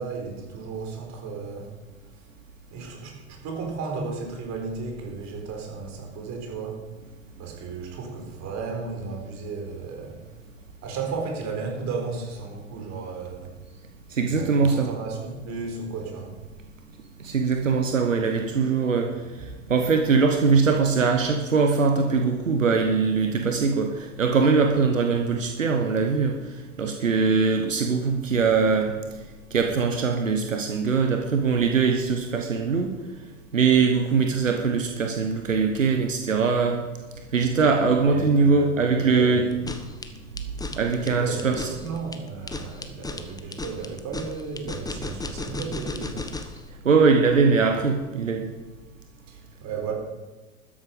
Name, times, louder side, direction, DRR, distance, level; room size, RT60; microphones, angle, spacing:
voice 1, 0.0-1.7 2.7-6.8 7.4-10.2 10.8-13.5 14.3-16.3 37.9-39.7 40.9-46.3 49.3-49.9, right 4 dB, 45° right, 1 dB, 4.1 m, -34 dB
voice 2, 14.1-14.9 17.2-28.9 29.5-32.9 33.5-36.8 37.3-39.4 40.7-41.7 46.8-48.5, right 5 dB, 90° right, 4 dB, 1.1 m, -22 dB
sound 1, 39.5-46.6, left 3 dB, 10° left, 1.2 m, -35 dB
13.0 x 10.0 x 5.3 m, 1.2 s
hypercardioid pair, 80°, 38 cm